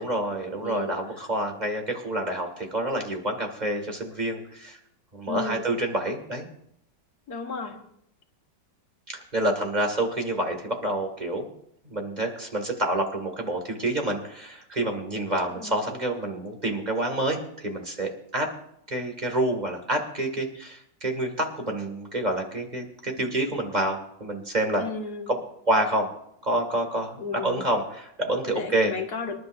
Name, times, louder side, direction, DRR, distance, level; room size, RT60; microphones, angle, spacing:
voice 1, 0.0-4.8 5.1-6.5 9.1-11.5 11.8-18.5 18.9-24.9 25.3-25.4 25.7-26.1 26.4-28.9, right 1 dB, 25° right, 3 dB, 2.2 m, -28 dB
voice 2, 0.6-0.9 5.3-5.7 7.3-7.8 15.5-15.8 24.8-25.4 27.2-27.7 28.4-29.4, left 4 dB, 65° left, 4 dB, 2.0 m, -34 dB
26.0 x 11.5 x 2.6 m, 0.73 s
omnidirectional pair, 1.9 m